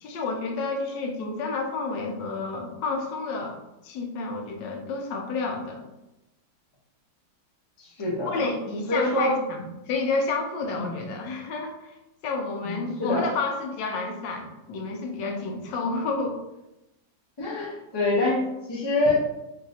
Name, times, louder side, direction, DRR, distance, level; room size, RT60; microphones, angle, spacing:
voice 1, 0.0-3.6 3.8-5.9 8.3-12.0 12.2-16.4, left 3 dB, 85° left, 2 dB, 1.3 m, -30 dB
voice 2, 7.8-8.4 8.9-9.4 10.8-10.9 12.6-13.3 17.4-19.1, left 2 dB, 30° left, -4 dB, 0.5 m, -26 dB
3.9 x 2.6 x 2.7 m, 0.93 s
omnidirectional pair, 1.9 m